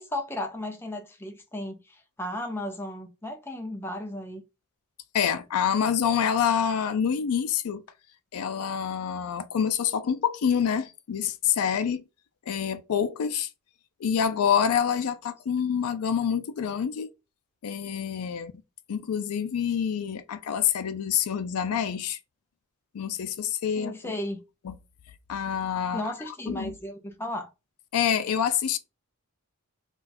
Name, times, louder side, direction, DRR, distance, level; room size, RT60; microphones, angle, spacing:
voice 1, 0.0-4.4 23.8-24.4 25.9-27.5, left 1 dB, 10° left, 0.4 m, -35 dB
voice 2, 5.1-7.8 8.3-12.0 12.5-13.5 14.0-17.1 17.6-18.5 18.9-22.2 22.9-24.1 24.6-24.8 25.3-26.7 27.9-28.8, left 8 dB, 90° left, 0.4 m, -27 dB
2.4 x 2.3 x 4.0 m
head